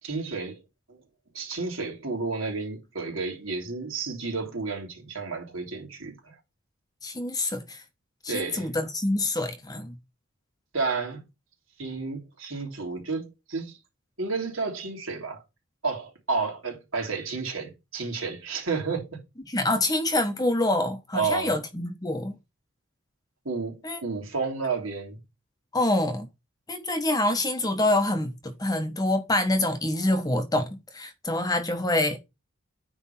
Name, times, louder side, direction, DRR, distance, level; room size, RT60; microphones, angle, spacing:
voice 1, 0.0-0.6 0.9-1.0 1.3-6.3 8.3-8.7 10.7-11.2 11.8-13.8 14.2-15.4 15.8-19.2 21.1-21.5 23.4-25.2, right 4 dB, 75° right, 3.2 m, -31 dB
voice 2, 7.0-7.8 8.2-10.0 19.5-22.4 23.8-24.0 25.7-26.3 26.7-30.7 30.9-32.2, left 1 dB, 20° left, 1.2 m, -26 dB
9.5 x 3.6 x 5.7 m
head